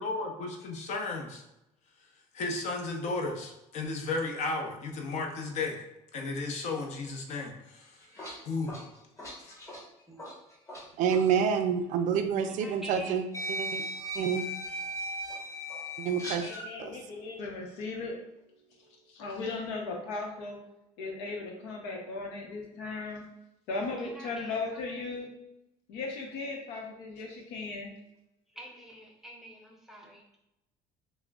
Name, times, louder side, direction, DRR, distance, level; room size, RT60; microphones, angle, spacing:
voice 1, 0.0-1.4 2.3-5.8 6.1-7.9 8.4-8.7 9.4-9.6, left 3 dB, 55° left, 2 dB, 0.8 m, -34 dB
sound 1, 7.8-10.8 11.1-11.3 12.4-12.5 13.3-16.7, equal, 20° left, 1.2 m, -38 dB
voice 2, 11.0-13.2 13.5-13.9 14.2-14.4 16.0-16.5 16.8-16.9, right 7 dB, 60° right, 8 dB, 0.4 m, -28 dB
voice 3, 12.5-13.1 24.0-25.1 28.6-30.2, right 1 dB, ahead, 0 dB, 0.7 m, -47 dB
voice 4, 16.4-18.2 19.1-20.6 21.0-23.2 23.7-25.3 25.9-27.9, left 3 dB, 90° left, 1 dB, 0.8 m, -37 dB
5.8 x 2.1 x 2.3 m, 0.88 s
cardioid pair, 115°, 14 cm